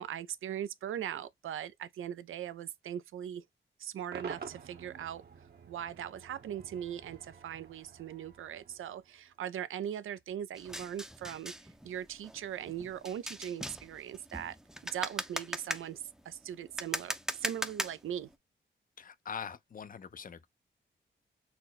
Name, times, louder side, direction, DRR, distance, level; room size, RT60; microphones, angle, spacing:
voice 1, 0.0-3.4 3.8-5.2 5.7-14.6 14.9-18.3, right 10 dB, 90° right, 0.4 m, -40 dB
Cheering / Crowd / Fireworks, 4.1-9.4, right 5 dB, 55° right, 0.9 m, -49 dB
sound 1, 10.6-18.3, equal, 5° right, 0.5 m, -40 dB
voice 2, 19.0-20.5, left 7 dB, 45° left, 0.5 m, -43 dB
4.3 x 2.1 x 3.8 m
wide cardioid pair, 100°, 20 cm